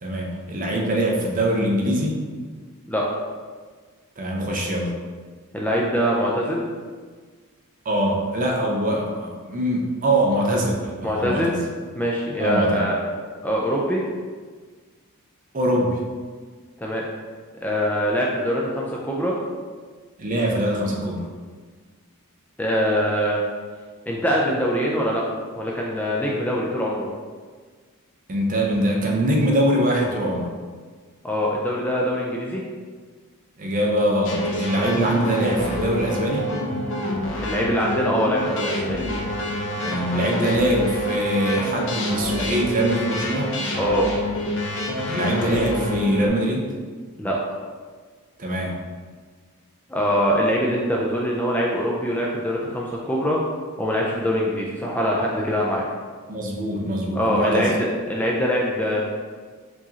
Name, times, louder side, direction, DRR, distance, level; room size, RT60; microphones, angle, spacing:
voice 1, 0.0-2.2 4.2-5.0 7.8-11.6 12.4-12.8 15.5-16.0 20.2-21.3 28.3-30.5 33.6-36.5 39.8-43.5 45.1-46.7 48.4-48.7 56.3-57.7, right 1 dB, 40° right, -1 dB, 0.6 m, -23 dB
voice 2, 5.5-6.6 11.0-11.5 12.0-13.0 13.4-14.0 16.8-17.0 17.6-19.3 22.6-23.4 24.1-25.2 25.6-27.1 31.2-32.6 37.4-39.1 43.8-44.1 47.2-47.4 49.9-53.4 53.8-55.9 57.1-59.1, equal, 5° left, -3 dB, 0.4 m, -23 dB
sound 1, 34.2-46.3, left 1 dB, 55° left, 0.7 m, -27 dB
4.6 x 3.0 x 2.8 m, 1.5 s
head